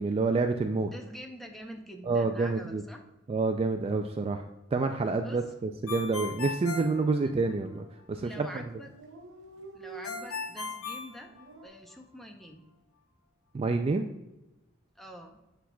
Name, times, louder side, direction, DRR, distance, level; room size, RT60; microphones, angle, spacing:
voice 1, 0.0-0.9 2.1-2.8 3.3-4.4 4.7-8.6 13.5-14.1, right 3 dB, 30° right, 5 dB, 0.3 m, -28 dB
voice 2, 0.9-3.0 5.2-5.4 8.2-8.9 9.7-11.3 11.6-12.6 15.0-15.4, equal, ahead, 2 dB, 0.7 m, -45 dB
Dog, 5.4-5.7 6.0-6.1 6.3-7.0 7.6-7.9 8.2-8.3 8.5-8.6 8.7-11.7, right 2 dB, 65° right, 0.6 m, -49 dB
Ringtone, 5.9-7.8 10.0-11.9, left 4 dB, 85° left, 0.8 m, -38 dB
8.3 x 5.8 x 2.3 m, 0.98 s
head